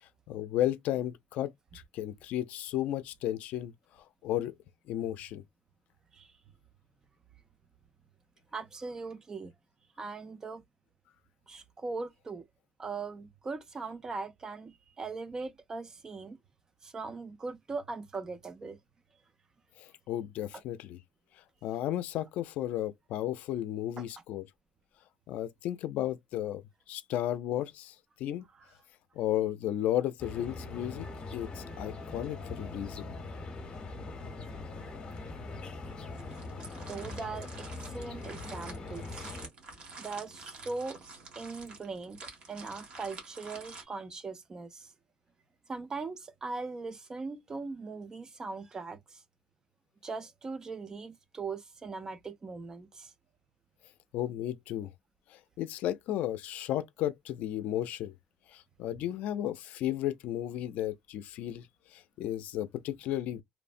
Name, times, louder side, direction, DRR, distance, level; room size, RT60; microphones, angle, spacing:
voice 1, 0.3-3.7 4.2-4.5 4.9-5.4 19.8-21.0 21.6-24.4 25.3-26.6 26.9-27.9 28.2-28.5 29.2-31.1 31.3-33.1 54.1-54.9 55.3-58.1 58.5-61.7 61.9-63.4, left 12 dB, 80° left, 0.4 m, -34 dB
voice 2, 8.5-9.5 10.0-10.6 11.5-12.4 12.8-16.4 16.8-18.8 24.0-24.1 28.5-28.7 36.9-39.4 40.0-41.0 41.3-42.2 42.5-44.9 45.7-49.2 50.0-53.1, right 4 dB, 25° right, 0.5 m, -40 dB
sound 1, 30.2-39.5, left 3 dB, 35° left, 1.0 m, -42 dB
sound 2, 35.8-43.8, right 3 dB, 45° right, 1.3 m, -49 dB
3.1 x 2.0 x 2.4 m
cardioid pair, 140°, 3 cm